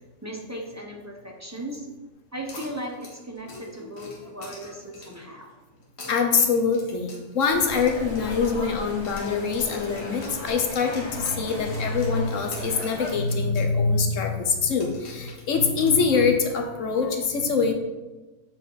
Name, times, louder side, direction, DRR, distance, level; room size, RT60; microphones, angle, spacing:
voice 1, 0.2-1.9 2.3-5.5 11.7-11.8, right 1 dB, 15° right, 0 dB, 0.7 m, -37 dB
sound 1, 2.5-5.3 5.8-8.8 9.0-13.7 14.0-14.1 14.8-16.4, left 2 dB, 45° left, 1.7 m, -45 dB
voice 2, 3.6-3.9 6.1-17.7, left 5 dB, 60° left, 5 dB, 1.1 m, -24 dB
sound 2, 7.5-13.1, left 1 dB, 85° left, 2.1 m, -37 dB
7.3 x 4.5 x 4.1 m, 1.2 s
omnidirectional pair, 1.6 m